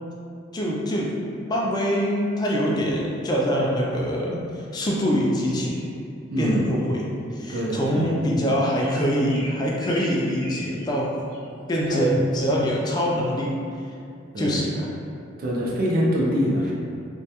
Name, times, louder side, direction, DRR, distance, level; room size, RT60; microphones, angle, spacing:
voice 1, 0.5-1.1 1.5-5.9 6.4-11.2 11.7-13.6 14.4-14.9, equal, 20° left, -3 dB, 0.3 m, -24 dB
sound 1, 5.7-5.9 6.8-6.9 7.4-7.6 7.9-8.1 8.7-11.0 11.3-11.4 11.8-12.0 12.3-12.5, left 1 dB, 80° left, 0.7 m, -41 dB
voice 2, 6.3-6.6 7.5-8.1 11.9-12.2 14.3-14.6 15.4-16.7, equal, 50° right, -4 dB, 0.5 m, -24 dB
2.3 x 2.2 x 2.8 m, 2.5 s
head